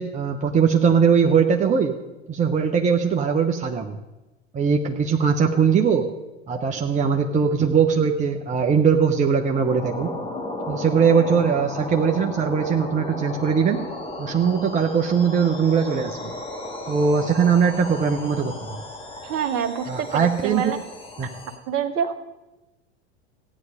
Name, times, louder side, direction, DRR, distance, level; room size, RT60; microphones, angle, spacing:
voice 1, 0.0-1.9 2.3-4.0 4.5-6.1 6.5-10.1 10.7-13.9 14.2-16.3 16.9-18.5 19.9-20.7 21.2-21.3, right 6 dB, 20° right, 3 dB, 1.0 m, -20 dB
sound 1, 9.5-21.6, left 1 dB, 15° left, 2.5 m, -34 dB
voice 2, 19.2-20.8 21.2-21.3 21.7-22.1, right 8 dB, 40° right, 8 dB, 1.5 m, -27 dB
16.0 x 9.6 x 5.1 m, 1.0 s
figure-of-eight pair, 85°, 34 cm